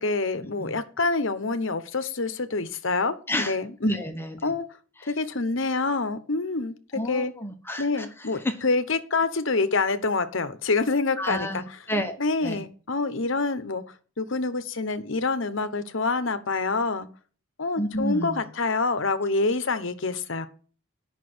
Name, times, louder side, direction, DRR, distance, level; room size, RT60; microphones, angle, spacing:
voice 1, 0.0-4.0 4.4-4.6 5.0-7.3 7.8-11.6 12.2-13.8 14.2-17.1 17.6-20.5, left 3 dB, 60° left, 11 dB, 1.0 m, -26 dB
voice 2, 3.8-4.4 6.9-8.1 8.4-8.5 11.2-12.2 12.4-12.6 17.8-18.5, equal, 10° left, 5 dB, 1.1 m, -29 dB
9.9 x 6.0 x 6.2 m, 0.40 s
head